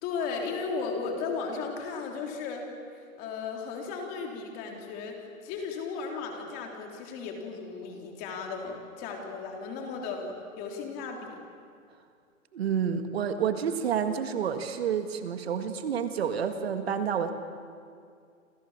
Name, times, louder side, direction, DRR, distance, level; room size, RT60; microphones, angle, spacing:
voice 1, 0.0-2.7 2.9-11.4, left 5 dB, 20° left, 2 dB, 3.4 m, -35 dB
voice 2, 12.5-17.3, right 7 dB, 45° right, 8 dB, 1.8 m, -29 dB
28.5 x 27.5 x 7.4 m, 2.3 s
hypercardioid pair, 160°, 42 cm